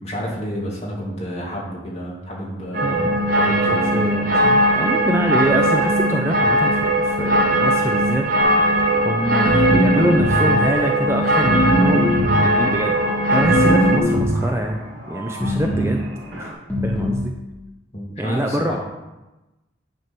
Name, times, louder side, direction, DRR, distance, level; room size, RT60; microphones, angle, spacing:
voice 1, 0.0-3.0 3.4-4.2 17.9-18.8, equal, 35° left, -5 dB, 2.5 m, -30 dB
sound 1, 2.7-14.0, right 1 dB, 45° right, 1.1 m, -19 dB
voice 2, 2.8-3.2 3.7-8.3 9.0-13.0 13.3-14.8 15.1-16.0 16.4-17.3 18.2-18.8, right 1 dB, 15° right, 2 dB, 0.5 m, -25 dB
sound 2, 8.4-16.5, left 1 dB, 70° right, 1.8 m, -31 dB
sound 3, 9.4-10.6 11.4-12.5 13.4-14.5 15.4-16.0 16.7-17.3, equal, 10° left, 1.9 m, -20 dB
9.5 x 4.5 x 6.1 m, 1.0 s
head